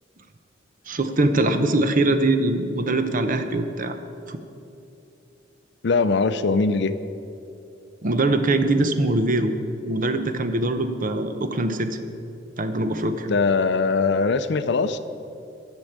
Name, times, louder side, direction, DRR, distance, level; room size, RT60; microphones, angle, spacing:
voice 1, 0.9-4.0 4.3-4.4 8.0-9.5 9.8-12.0 12.6-13.3, right 2 dB, 45° right, 8 dB, 0.8 m, -22 dB
voice 2, 5.8-7.0 13.3-15.0, left 4 dB, 65° left, 12 dB, 0.5 m, -21 dB
12.0 x 6.2 x 8.0 m, 2.7 s
head